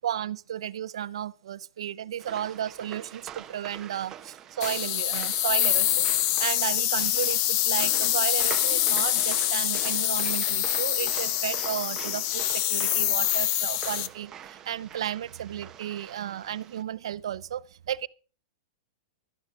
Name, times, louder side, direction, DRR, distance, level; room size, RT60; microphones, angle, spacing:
voice 1, 0.0-6.1 6.4-18.1, right 10 dB, 80° right, 0.6 m, -33 dB
sound 1, 2.2-16.8, right 9 dB, 20° right, 0.7 m, -44 dB
sound 2, 4.6-14.1, left 14 dB, 40° left, 0.6 m, -25 dB
12.0 x 10.5 x 5.6 m
supercardioid pair, 160°, 3 cm